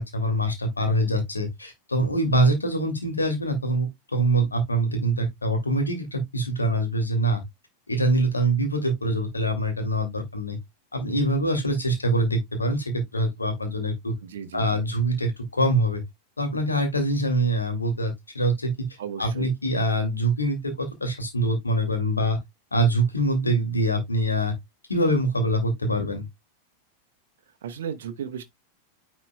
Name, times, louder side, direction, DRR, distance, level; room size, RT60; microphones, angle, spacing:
voice 1, 0.0-7.4 7.9-10.6 10.9-14.1 14.5-16.0 16.4-18.7 19.2-22.4 22.7-24.5 24.9-26.2, right 1 dB, 80° left, 2.3 m, -24 dB
voice 2, 14.2-14.8 19.0-19.5 27.6-28.4, right 8 dB, 60° right, 0.9 m, -35 dB
9.9 x 4.2 x 2.2 m
figure-of-eight pair, 90°, 0 cm